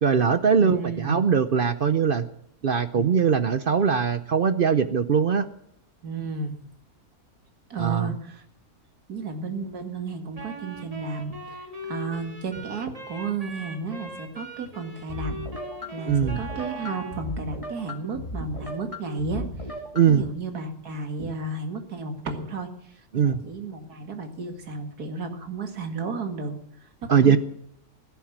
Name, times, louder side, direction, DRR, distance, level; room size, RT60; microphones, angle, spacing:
voice 1, 0.0-2.3 2.6-5.5 7.8-8.1 16.1-16.4 19.9-20.2 23.1-23.4 27.1-27.4, right 6 dB, 55° right, 12 dB, 0.6 m, -21 dB
voice 2, 0.6-1.3 2.9-3.2 6.0-6.6 7.7-8.4 9.1-15.3 15.9-19.7 20.1-27.4, right 3 dB, 90° right, 6 dB, 2.4 m, -33 dB
Wind instrument woodwind instrument, 10.3-17.3, right 1 dB, 25° right, 2.2 m, -40 dB
sound 1, 15.1-20.3, equal, 20° left, 2.0 m, -36 dB
15.5 x 10.5 x 7.3 m, 0.73 s
omnidirectional pair, 1.6 m